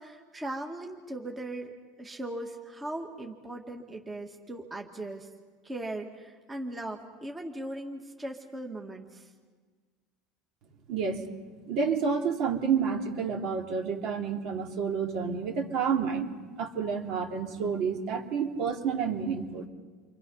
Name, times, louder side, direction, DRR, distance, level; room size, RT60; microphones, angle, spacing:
voice 1, 0.0-1.7 2.0-5.3 5.6-9.3, right 1 dB, 15° right, 2 dB, 2.1 m, -38 dB
voice 2, 10.9-11.2 11.7-16.3 16.6-19.7, right 6 dB, 60° right, 1 dB, 3.1 m, -29 dB
30.0 x 23.5 x 5.6 m, 1.4 s
supercardioid pair, 120°, 0 cm